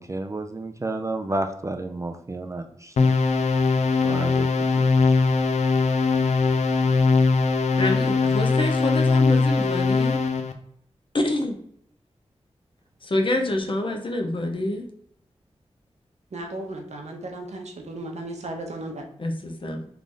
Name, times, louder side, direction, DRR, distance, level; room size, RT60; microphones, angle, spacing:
voice 1, 0.0-3.1 4.0-5.2, right 2 dB, 25° right, 5 dB, 0.3 m, -31 dB
sound 1, 3.0-10.5, left 4 dB, 80° left, 0.4 m, -21 dB
voice 2, 7.8-10.2 11.1-11.6 13.0-14.9 19.2-19.9, left 1 dB, 45° left, 3 dB, 0.7 m, -27 dB
voice 3, 16.3-19.0, right 2 dB, 75° right, 3 dB, 0.7 m, -35 dB
3.3 x 2.5 x 3.7 m, 0.66 s
cardioid pair, 55°, 12 cm